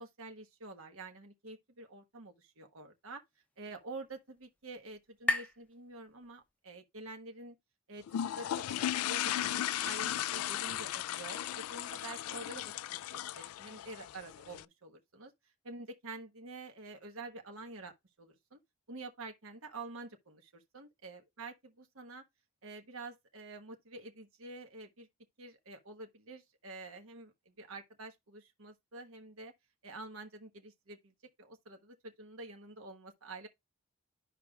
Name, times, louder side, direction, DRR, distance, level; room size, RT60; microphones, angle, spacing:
voice 1, 0.0-3.2 3.6-7.6 7.9-12.7 13.1-15.3 15.6-17.9 18.2-18.6 18.9-22.2 22.6-25.1 25.4-29.5 29.8-31.1 31.4-33.5, right 2 dB, 75° right, 1.3 m, -48 dB
sound 1, 2.9-6.7, left 2 dB, 5° left, 0.6 m, -40 dB
sound 2, 8.1-14.6, left 12 dB, 85° left, 0.3 m, -36 dB
11.5 x 5.1 x 2.4 m
head